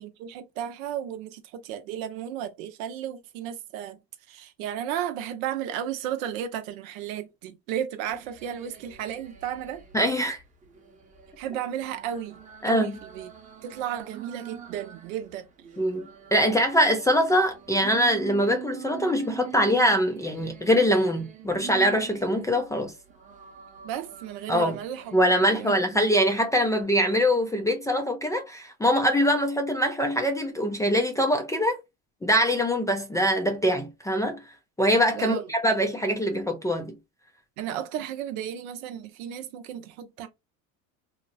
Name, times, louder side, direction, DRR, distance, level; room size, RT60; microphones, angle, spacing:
voice 1, 0.0-4.0 4.3-9.8 11.4-12.4 12.6-13.3 13.6-15.5 23.8-25.2 25.5-26.0 35.1-35.5 37.6-40.3, right 10 dB, 80° right, 0.7 m, -34 dB
sound 1, 8.1-10.2 10.6-15.1 15.6-22.6 23.1-26.0 26.5-26.8, right 10 dB, 20° right, 0.7 m, -44 dB
voice 2, 9.9-10.4 12.6-12.9 15.8-22.9 24.5-24.8 25.1-31.8 32.2-34.4 34.8-36.9, equal, 10° left, 0.3 m, -23 dB
2.8 x 2.0 x 2.5 m
supercardioid pair, 95°, 40 cm